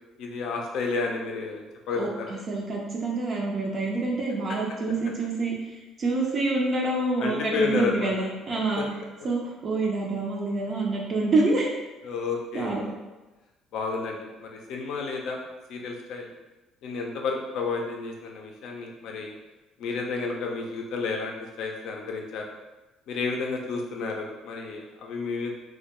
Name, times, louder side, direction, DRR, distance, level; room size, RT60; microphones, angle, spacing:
voice 1, 0.2-2.4 7.2-8.1 12.0-12.9 13.7-15.4 15.7-16.3 16.8-19.3 19.8-22.4 23.1-25.5, left 4 dB, 70° left, 1 dB, 0.4 m, -31 dB
voice 2, 2.0-5.5 6.0-8.9 9.2-11.7 12.5-12.8, right 3 dB, 50° right, -2 dB, 0.4 m, -27 dB
2.2 x 2.1 x 2.9 m, 1.1 s
hypercardioid pair, 60°, 0 cm